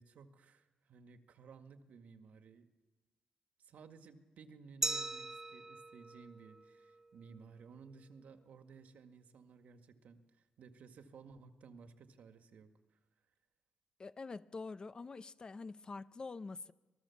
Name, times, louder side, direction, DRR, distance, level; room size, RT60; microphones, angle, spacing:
voice 1, 0.0-2.7 3.6-12.7, right 5 dB, 75° right, 2.0 m, -57 dB
Glass, 4.8-7.5, right 2 dB, 15° right, 0.7 m, -41 dB
voice 2, 14.0-16.7, left 3 dB, 30° left, 0.7 m, -46 dB
26.0 x 19.5 x 7.2 m
cardioid pair, 120°, 3 cm